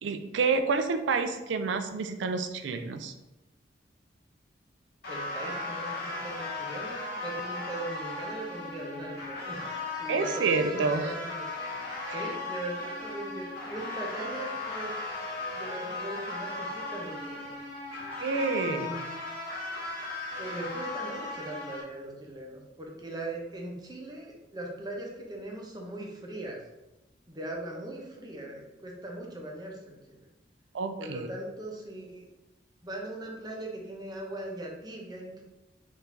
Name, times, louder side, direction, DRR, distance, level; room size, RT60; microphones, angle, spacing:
voice 1, 0.0-3.1 10.1-11.1 12.1-12.3 18.2-18.9 30.7-31.3, right 4 dB, 75° right, 9 dB, 0.4 m, -28 dB
sound 1, 5.0-21.8, left 2 dB, 60° left, 1.3 m, -37 dB
voice 2, 5.1-9.7 10.0-11.5 12.1-15.2 15.5-17.6 18.6-19.1 20.4-26.6 27.3-30.3 31.0-32.3 32.8-35.4, right 1 dB, 25° right, -1 dB, 0.7 m, -40 dB
4.7 x 2.7 x 3.4 m, 1.0 s
head